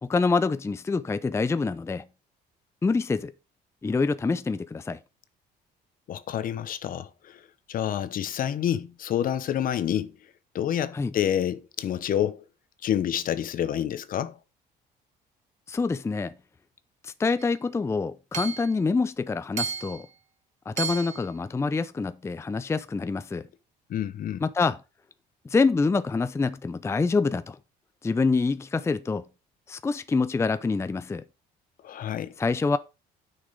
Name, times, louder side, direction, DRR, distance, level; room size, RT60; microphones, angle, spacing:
voice 1, 0.0-2.0 2.8-3.3 3.8-5.0 10.9-11.1 15.7-16.3 17.0-20.1 20.7-23.5 24.4-24.8 25.4-27.6 28.0-29.3 29.7-31.2 32.4-32.8, left 4 dB, 15° left, 0.5 m, -26 dB
voice 2, 6.1-7.4 7.7-10.2 10.5-12.4 12.8-14.4 23.9-24.4 31.8-32.3, left 10 dB, 55° left, 1.0 m, -28 dB
Hammer / Chink clink, 17.4-17.5 18.3-18.7 19.6-20.0 20.8-21.3, right 6 dB, 45° right, 1.6 m, -32 dB
9.7 x 6.3 x 5.1 m
cardioid pair, 110°, 17 cm